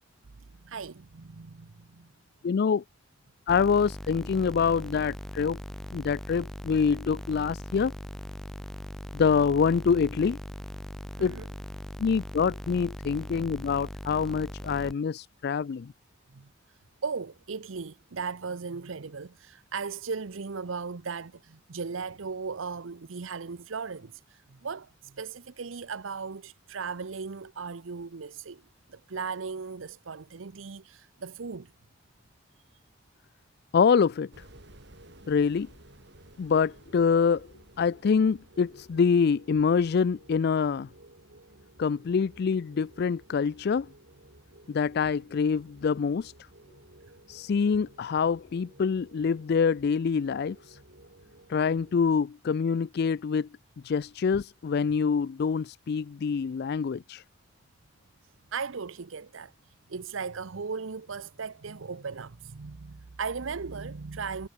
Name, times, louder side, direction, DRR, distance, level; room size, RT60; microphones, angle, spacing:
voice 1, 0.6-2.1 11.2-11.5 16.3-16.5 17.0-28.6 28.9-31.7 58.5-59.5 59.9-64.5, right 5 dB, 90° right, 0.8 m, -37 dB
voice 2, 2.4-2.8 3.5-5.6 5.9-7.9 9.1-10.4 11.2-11.4 12.0-15.9 33.7-34.3 35.3-35.7 36.4-37.5 37.8-40.9 41.8-43.9 44.7-46.3 47.3-50.8 51.5-53.5 53.8-57.2, left 6 dB, 55° left, 0.4 m, -25 dB
sound 1, 3.5-14.9, equal, ahead, 0.7 m, -40 dB
sound 2, 34.3-52.2, right 1 dB, 60° right, 5.2 m, -54 dB
head